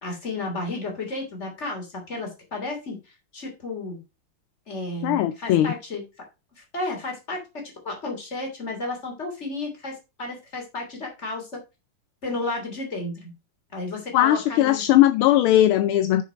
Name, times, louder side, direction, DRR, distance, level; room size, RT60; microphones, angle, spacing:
voice 1, 0.0-3.0 3.3-4.0 4.7-6.0 6.7-11.5 12.2-13.3 13.7-14.8, left 2 dB, 30° left, 3.2 m, -32 dB
voice 2, 5.0-5.7 14.1-16.2, left 13 dB, 80° left, 1.4 m, -19 dB
7.0 x 6.7 x 5.0 m
omnidirectional pair, 2.4 m